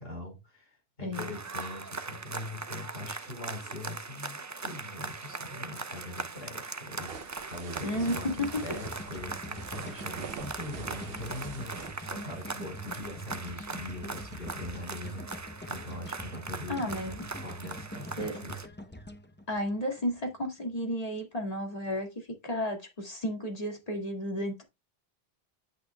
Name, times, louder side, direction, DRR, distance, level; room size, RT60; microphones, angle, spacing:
voice 1, 0.0-18.6, left 1 dB, 70° left, 4.8 m, -42 dB
sound 1, 1.1-18.7, right 3 dB, 30° right, 0.3 m, -40 dB
sound 2, 6.8-12.7, right 6 dB, 70° right, 1.0 m, -46 dB
voice 2, 7.8-8.5 16.7-17.2 18.2-18.3 19.5-24.6, equal, 40° left, 2.1 m, -33 dB
sound 3, 8.1-20.3, equal, 10° left, 0.7 m, -44 dB
8.7 x 8.2 x 2.3 m
omnidirectional pair, 1.0 m